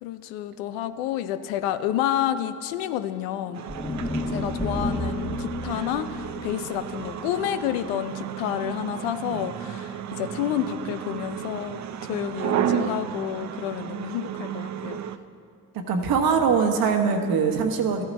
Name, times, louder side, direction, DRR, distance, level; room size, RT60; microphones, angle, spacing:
voice 1, 0.0-3.7 4.3-11.8 12.1-15.0, left 11 dB, 90° left, 12 dB, 0.5 m, -29 dB
sound 1, 3.5-15.2, right 9 dB, 50° right, 0.6 m, -33 dB
sound 2, 3.7-7.9, left 1 dB, 15° left, 1.2 m, -32 dB
voice 2, 15.9-18.0, right 6 dB, 65° right, 4 dB, 1.3 m, -22 dB
14.0 x 9.6 x 4.2 m, 2.4 s
supercardioid pair, 60°, 38 cm